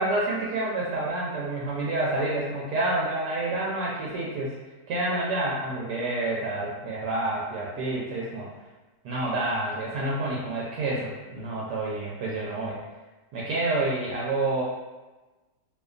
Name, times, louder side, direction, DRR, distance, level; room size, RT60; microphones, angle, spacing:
voice 1, 0.0-4.5 4.9-8.5 9.0-12.8 13.3-14.6, right 2 dB, 80° right, -5 dB, 1.1 m, -28 dB
2.7 x 2.2 x 2.3 m, 1.1 s
omnidirectional pair, 1.8 m